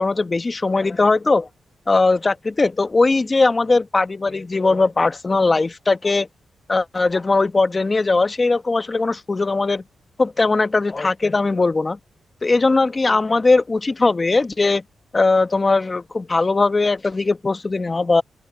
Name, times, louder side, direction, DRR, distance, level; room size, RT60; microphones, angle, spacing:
voice 1, 0.0-1.5 1.9-6.3 6.7-9.8 10.2-12.0 12.4-14.8 15.1-18.2, left 3 dB, 30° left, 1.1 m, -19 dB
open air
cardioid pair, 90°, 0 cm